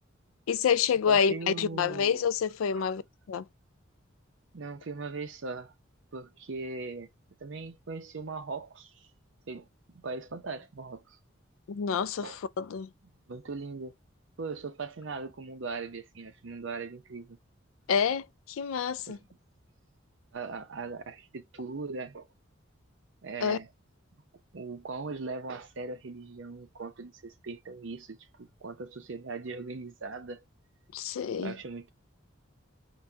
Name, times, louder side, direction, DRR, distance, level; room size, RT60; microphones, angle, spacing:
voice 1, 0.5-3.0 3.3-3.4 11.7-12.9 17.9-19.2 23.4-23.6 30.9-31.5, left 7 dB, 85° left, 0.4 m, -28 dB
voice 2, 1.1-2.2 2.8-2.9 4.5-5.7 6.1-7.1 7.4-9.1 9.5-11.2 12.2-12.4 13.3-13.9 14.4-17.4 19.1-19.2 20.3-22.3 23.2-23.7 24.5-30.4 31.4-31.9, right 4 dB, 70° right, 0.6 m, -39 dB
4.1 x 2.2 x 3.3 m
head